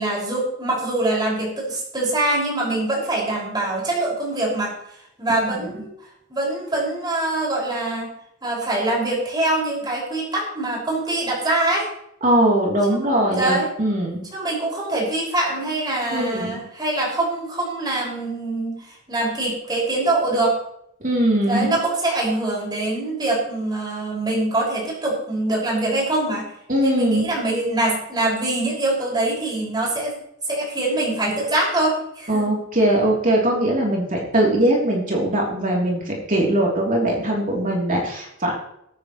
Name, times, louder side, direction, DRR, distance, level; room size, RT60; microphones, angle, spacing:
voice 1, 0.0-4.7 5.2-5.9 6.3-8.1 8.4-11.9 12.9-13.7 14.3-20.6 21.4-26.5 26.8-30.2 30.5-32.5, right 2 dB, 20° right, -4 dB, 5.8 m, -24 dB
voice 2, 12.2-14.2 16.1-16.6 21.0-21.8 26.7-27.3 32.3-38.5, right 1 dB, 40° right, -2 dB, 3.2 m, -21 dB
21.5 x 9.3 x 3.2 m, 0.75 s
head